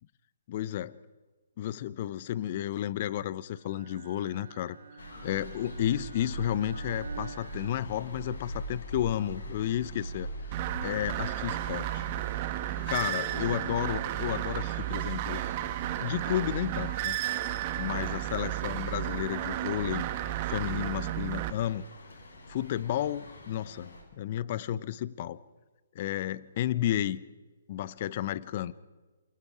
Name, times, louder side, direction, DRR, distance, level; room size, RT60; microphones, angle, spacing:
voice 1, 0.5-1.0 1.6-4.8 5.2-10.5 10.8-12.0 12.9-15.4 16.0-17.2 17.8-20.1 20.4-21.9 22.5-25.4 25.9-27.2 27.7-28.7, left 11 dB, 45° left, 18 dB, 0.9 m, -32 dB
Bowed string instrument, 3.6-8.6, right 5 dB, 65° right, 2.4 m, -48 dB
sound 1, 5.0-24.0, right 1 dB, 75° left, 7.9 m, -44 dB
sound 2, 10.5-21.5, right 14 dB, 35° right, 1.6 m, -33 dB
28.0 x 28.0 x 5.0 m, 1.3 s
figure-of-eight pair, 135°, 0 cm